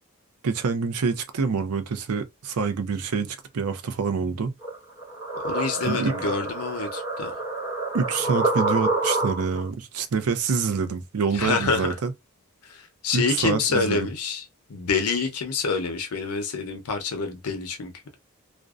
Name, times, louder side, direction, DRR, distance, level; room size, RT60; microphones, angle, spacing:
voice 1, 0.4-4.5 5.8-6.3 7.9-12.1 13.1-14.1, right 5 dB, 75° right, 0.5 m, -26 dB
sound 1, 4.6-9.7, right 2 dB, 10° right, 0.9 m, -28 dB
voice 2, 5.4-7.4 11.3-11.9 12.7-12.8 13.0-14.4 14.7-17.9, left 4 dB, 85° left, 0.6 m, -27 dB
2.5 x 2.1 x 2.3 m
head